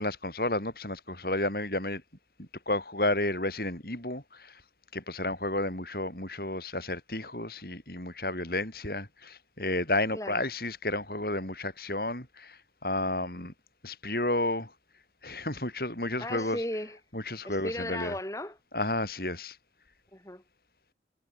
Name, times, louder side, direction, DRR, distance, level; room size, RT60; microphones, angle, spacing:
voice 1, 0.0-2.0 2.4-4.5 4.9-13.5 13.8-14.7 15.2-16.6 17.1-18.1 18.7-19.6, left 2 dB, 55° left, 6.6 m, -32 dB
voice 2, 10.1-10.4 16.2-17.0 17.4-18.6 20.1-20.4, left 1 dB, 15° left, 4.6 m, -36 dB
head